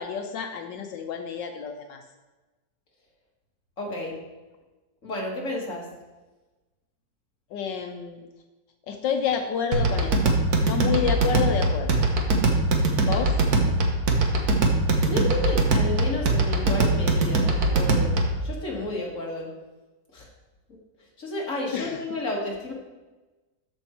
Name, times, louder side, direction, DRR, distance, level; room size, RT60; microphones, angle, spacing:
voice 1, 0.0-2.0 7.5-8.3 8.9-12.0 13.0-13.4 21.7-22.0, left 7 dB, 75° left, 4 dB, 1.3 m, -29 dB
voice 2, 3.8-4.2 5.0-5.9 15.0-18.1 18.4-19.5 20.1-20.3 21.2-22.7, left 1 dB, 45° left, -3 dB, 2.2 m, -31 dB
sound 1, 9.7-18.4, right 2 dB, 55° right, 1.5 m, -22 dB
13.5 x 5.5 x 4.5 m, 1.2 s
omnidirectional pair, 2.0 m